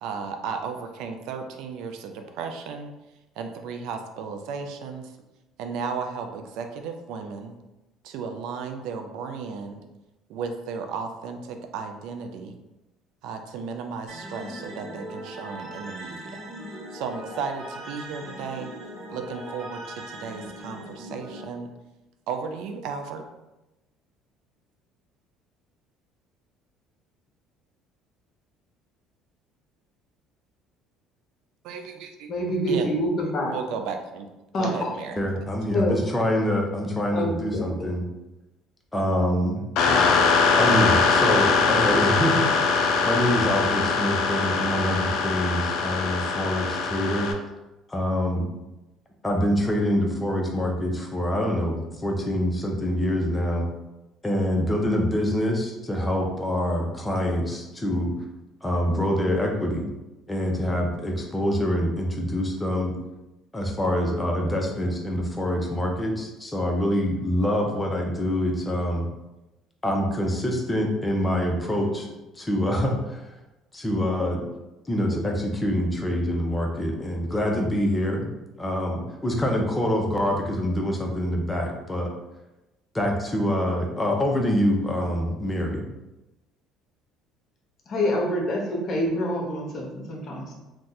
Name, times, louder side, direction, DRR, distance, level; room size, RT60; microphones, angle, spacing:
voice 1, 0.0-2.9 3.4-5.1 5.6-7.6 8.0-9.8 10.3-12.6 13.2-16.4 16.9-18.7 19.1-21.7 22.3-23.2 31.6-32.3 32.6-32.9 33.5-34.3 34.6-35.2, right 5 dB, 75° right, 5 dB, 0.4 m, -34 dB
sound 1, 14.1-21.5, equal, 45° right, 1.1 m, -39 dB
voice 2, 32.3-33.5 34.5-34.9 35.7-36.0 37.1-37.9 87.9-90.5, equal, 50° left, -1 dB, 0.9 m, -26 dB
voice 3, 35.2-38.1 38.9-39.7 40.6-42.6 43.0-47.3 47.9-48.5 49.2-53.7 54.2-58.1 58.6-59.9 60.3-63.0 63.5-69.1 69.8-72.1 72.4-73.3 73.7-74.4 74.9-78.3 78.6-82.1 82.9-85.9, equal, 15° left, 1 dB, 0.7 m, -25 dB
sound 2, 39.8-47.3, left 4 dB, 75° left, 0.4 m, -22 dB
2.6 x 2.3 x 3.9 m, 1.0 s
supercardioid pair, 85°, 0 cm